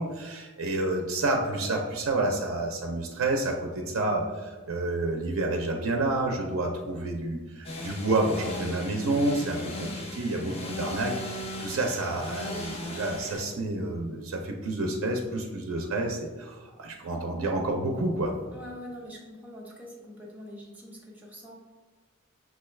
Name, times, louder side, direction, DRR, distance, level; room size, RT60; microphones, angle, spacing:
voice 1, 0.0-18.3, right 2 dB, 80° right, 2 dB, 0.5 m, -29 dB
sound 1, 7.6-13.4, left 1 dB, 30° left, 0.5 m, -37 dB
voice 2, 18.5-21.5, equal, 10° right, -3 dB, 0.7 m, -44 dB
6.0 x 2.3 x 3.2 m, 1.3 s
head